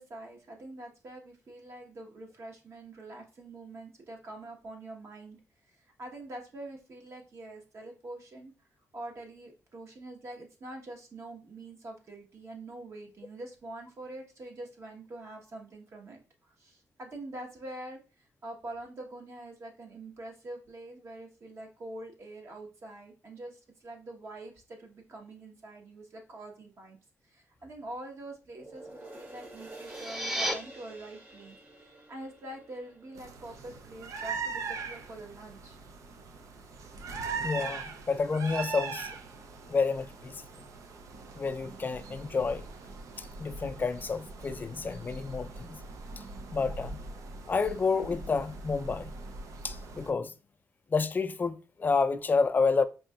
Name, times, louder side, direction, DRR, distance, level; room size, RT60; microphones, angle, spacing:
voice 1, 0.0-5.4 5.6-8.5 8.9-16.2 16.5-27.0 27.2-35.8, right 2 dB, 55° right, 1.2 m, -45 dB
sound 1, 28.5-35.1 35.5-35.6, right 1 dB, 35° right, 1.0 m, -50 dB
sound 2, 29.7-30.5, equal, 10° right, 0.7 m, -32 dB
sound 3, 33.2-50.1, right 4 dB, 75° right, 0.5 m, -41 dB
voice 2, 37.4-39.1 39.7-40.4 41.3-42.6 43.4-45.8 46.5-47.0 47.5-49.1 49.6-50.3 50.9-52.9, left 4 dB, 35° left, 0.4 m, -29 dB
4.8 x 2.8 x 2.3 m
cardioid pair, 80°, 5 cm